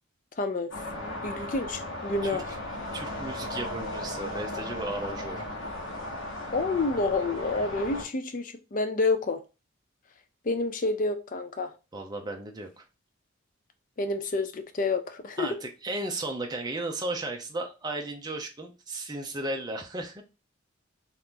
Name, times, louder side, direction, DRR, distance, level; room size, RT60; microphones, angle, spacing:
voice 1, 0.4-0.7 1.2-2.5 6.5-9.4 10.4-11.7 14.0-15.6, left 3 dB, 40° left, 0.4 m, -28 dB
sound 1, 0.7-8.0, left 1 dB, 75° left, 1.0 m, -36 dB
voice 2, 2.9-5.4 11.9-12.8 15.4-20.2, right 2 dB, 20° right, 0.5 m, -35 dB
2.9 x 2.5 x 3.5 m
head